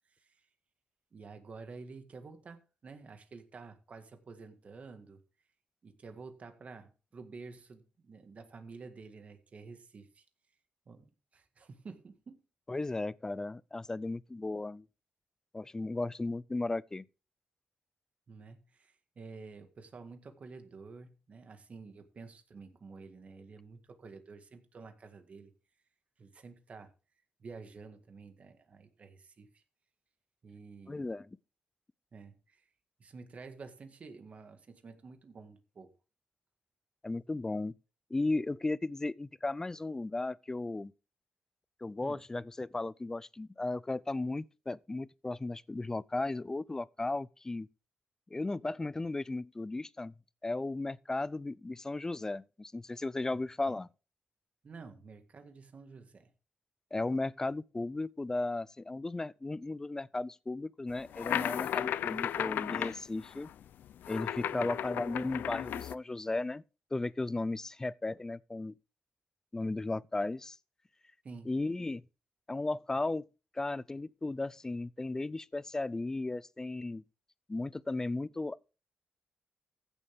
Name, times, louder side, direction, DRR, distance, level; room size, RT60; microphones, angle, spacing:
voice 1, 1.1-5.2 5.8-10.3 10.9-12.4 18.3-25.5 26.2-26.9 27.4-29.6 30.4-31.1 32.1-32.6 33.0-35.9 42.0-42.2 53.7-53.8 54.6-56.3 64.5-64.7 71.2-71.5, right 4 dB, 45° right, 1.8 m, -50 dB
voice 2, 12.7-14.9 15.5-17.0 30.9-31.4 37.0-37.7 38.1-40.9 41.8-47.7 48.3-50.1 50.4-53.9 56.9-63.5 64.1-66.6 66.9-68.7 69.5-70.6 71.5-72.0 72.5-73.3 73.5-77.0 77.5-78.7, left 2 dB, 20° left, 0.4 m, -35 dB
sound 1, 61.0-65.9, left 10 dB, 85° left, 0.5 m, -35 dB
15.0 x 7.1 x 3.6 m
cardioid pair, 105°, 3 cm